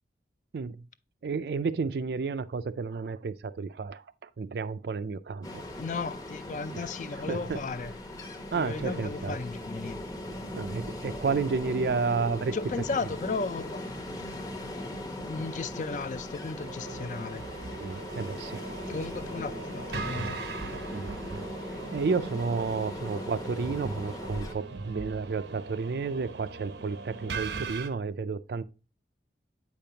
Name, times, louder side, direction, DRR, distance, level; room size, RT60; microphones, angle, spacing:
voice 1, 0.5-0.9 1.2-5.6 6.7-6.8 7.3-7.6 8.5-9.4 10.5-12.5 17.7-18.7 20.9-21.1 21.6-28.6, right 4 dB, 65° right, 0.4 m, -31 dB
Ocean, 5.4-24.5, left 1 dB, 20° left, 0.7 m, -39 dB
voice 2, 5.8-7.9 8.5-10.0 12.5-13.9 15.2-17.4 18.9-20.4, left 4 dB, 45° left, 0.4 m, -35 dB
sound 1, 16.6-27.9, right 4 dB, 85° right, 0.7 m, -40 dB
8.3 x 5.2 x 2.8 m
head